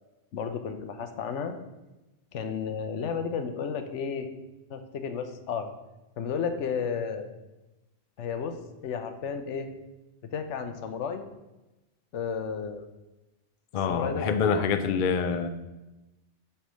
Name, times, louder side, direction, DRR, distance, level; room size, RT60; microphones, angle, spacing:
voice 1, 0.3-1.5 2.3-4.3 4.7-5.7 6.2-7.4 8.2-8.6 8.8-9.7 10.3-11.2 12.1-12.8 13.9-14.5, left 6 dB, 85° left, 7 dB, 1.1 m, -32 dB
voice 2, 13.7-15.5, left 6 dB, 55° left, 9 dB, 0.6 m, -26 dB
7.3 x 3.4 x 6.2 m, 1.0 s
omnidirectional pair, 1.2 m